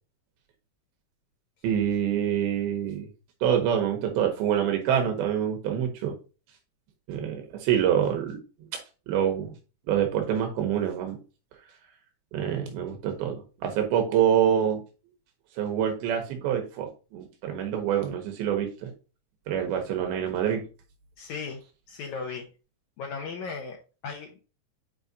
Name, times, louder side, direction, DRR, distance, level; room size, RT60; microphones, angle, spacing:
voice 1, 1.6-3.1 3.4-6.2 7.1-8.4 8.7-8.8 9.1-9.5 9.9-11.2 12.3-14.8 15.6-18.9 19.5-20.7, right 9 dB, 80° right, 3 dB, 2.8 m, -26 dB
voice 2, 21.2-21.6 21.9-22.5 23.0-24.4, left 5 dB, 85° left, 2 dB, 1.7 m, -36 dB
8.6 x 4.7 x 2.7 m, 0.33 s
omnidirectional pair, 4.3 m